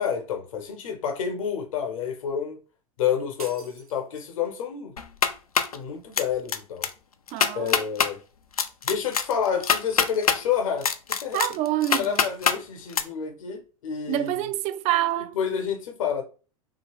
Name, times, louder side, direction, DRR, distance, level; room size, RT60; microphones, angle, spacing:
voice 1, 0.0-2.6 3.0-4.9 5.7-6.9 7.5-8.2 8.8-10.9 11.2-11.4 11.9-14.4 15.3-16.2, left 7 dB, 65° left, 0.9 m, -29 dB
sound 1, 3.4-4.6, right 3 dB, 85° right, 0.7 m, -45 dB
sound 2, 5.0-5.8 6.2-6.6 6.8-6.9 7.3-8.1 8.6-10.4 10.8-12.6 12.9-13.0, left 6 dB, 85° left, 0.4 m, -23 dB
voice 2, 7.3-7.8 11.3-12.3 14.1-15.4, right 14 dB, 40° right, 0.4 m, -27 dB
2.9 x 2.7 x 3.0 m
figure-of-eight pair, 80°, 18 cm